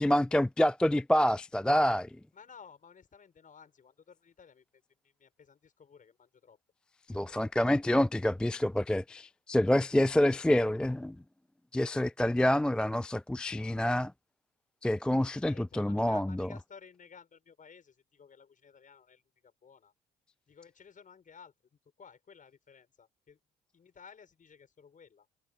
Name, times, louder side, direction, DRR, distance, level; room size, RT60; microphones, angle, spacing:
voice 1, 0.0-2.1 7.1-11.2 11.7-14.1 14.8-16.5, left 1 dB, 5° left, 0.3 m, -27 dB
voice 2, 2.3-6.6 15.1-19.9 20.5-21.5 22.0-23.4 23.7-25.3, left 6 dB, 40° left, 6.5 m, -55 dB
hypercardioid pair, 55°, 20 cm